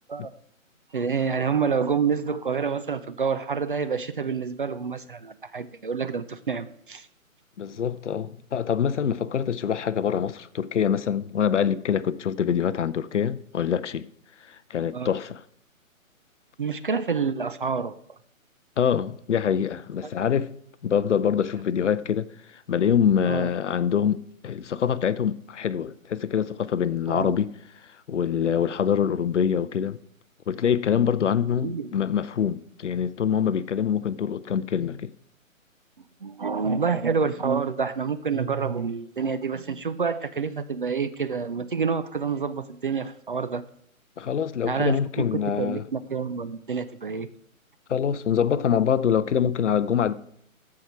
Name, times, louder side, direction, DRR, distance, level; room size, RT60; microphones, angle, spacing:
voice 1, 0.9-7.1 14.9-15.1 16.6-18.0 23.2-23.5 27.1-27.4 31.6-31.9 36.2-43.6 44.6-45.3 45.6-47.3, right 5 dB, 40° right, 0.5 m, -28 dB
voice 2, 7.6-14.1 14.5-15.4 18.8-20.5 20.8-22.3 22.5-27.5 28.1-30.0 30.5-35.1 44.2-45.9 47.9-50.1, left 8 dB, 60° left, 0.6 m, -25 dB
14.0 x 4.8 x 5.9 m
hypercardioid pair, 150°, 41 cm